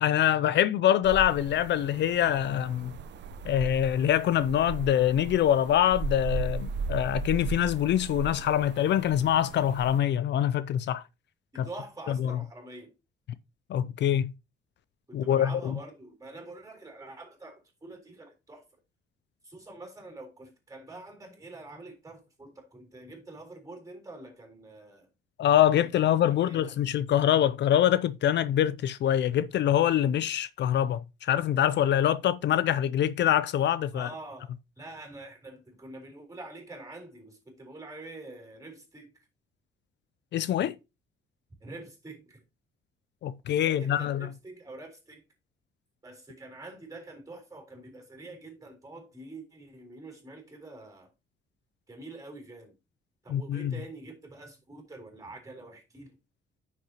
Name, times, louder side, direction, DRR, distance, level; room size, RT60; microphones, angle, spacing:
voice 1, 0.0-2.9 3.4-11.0 11.6-11.7 12.1-12.4 13.7-14.3 15.1-15.8 25.4-34.1 40.3-40.8 43.2-44.3 53.3-53.7, left 11 dB, 65° left, 0.5 m, -25 dB
sound 1, 1.0-10.0, right 4 dB, 65° right, 0.8 m, -37 dB
voice 2, 11.5-12.9 15.1-18.6 19.4-25.1 26.1-26.2 26.4-26.7 33.9-39.1 41.6-42.4 43.5-45.2 46.0-51.1 51.9-52.7 53.2-56.2, right 2 dB, 15° right, 3.8 m, -46 dB
9.7 x 6.6 x 2.9 m
cardioid pair, 90°, 20 cm